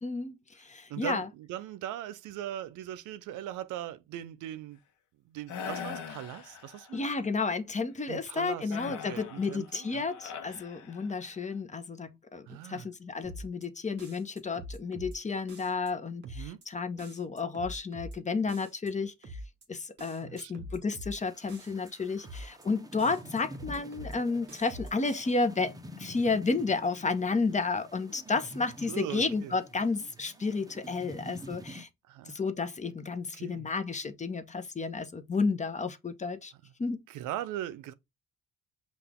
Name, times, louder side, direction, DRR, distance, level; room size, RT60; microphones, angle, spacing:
voice 1, 0.0-1.3 6.9-19.1 19.7-31.9 32.3-36.5 36.8-37.0, left 4 dB, 25° left, 0.8 m, -32 dB
voice 2, 0.9-4.8 5.2-7.1 8.1-10.1 12.5-12.9 16.2-16.6 20.2-20.7 23.2-23.3 28.9-29.5 32.1-32.4 33.3-33.7 36.6-36.7 37.1-37.9, right 12 dB, 85° right, 0.6 m, -40 dB
sound 1, 5.5-7.0 8.7-11.4, left 7 dB, 75° left, 0.9 m, -42 dB
sound 2, 13.2-13.7 14.0-15.2 15.5-15.9 16.2-16.7 17.0-18.2 18.5-18.9 19.2-19.7 20.0-21.2 21.5-21.9 22.2-22.7 23.0-24.2 24.5-25.2, equal, 35° right, 1.8 m, -44 dB
sound 3, 21.2-31.8, equal, 10° right, 0.7 m, -48 dB
5.7 x 2.5 x 3.5 m
cardioid pair, 90°, 30 cm